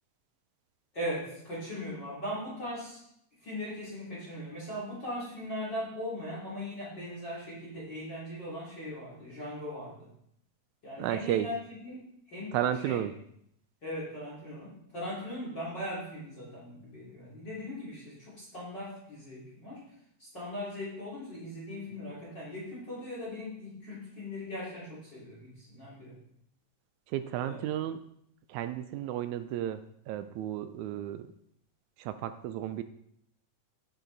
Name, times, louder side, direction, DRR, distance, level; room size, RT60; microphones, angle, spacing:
voice 1, 0.9-3.0 3.4-10.1 10.8-12.0 12.3-12.6 12.8-13.0 13.8-19.8 20.2-26.2 27.4-27.6, left 1 dB, 35° left, -6 dB, 3.4 m, -39 dB
voice 2, 11.0-11.5 12.5-13.1 27.1-28.0 28.5-31.3 32.0-32.8, right 11 dB, 85° right, 10 dB, 1.7 m, -33 dB
10.0 x 8.0 x 4.0 m, 0.74 s
omnidirectional pair, 3.9 m